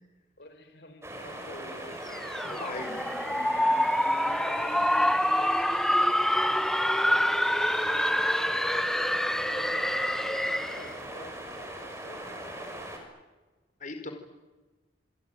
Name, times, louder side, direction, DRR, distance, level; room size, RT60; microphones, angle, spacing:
voice 1, 0.4-2.0 2.5-3.9 4.2-6.0 6.4-9.0 9.3-12.7, left 1 dB, 65° left, 7 dB, 5.0 m, -50 dB
sound 1, 1.0-13.0, right 1 dB, 15° right, 6.1 m, -40 dB
sound 2, 2.1-10.9, equal, 5° left, 0.8 m, -26 dB
voice 2, 2.4-3.0 13.8-14.1, left 3 dB, 50° left, 7 dB, 4.6 m, -38 dB
27.5 x 22.5 x 9.2 m, 1.2 s
head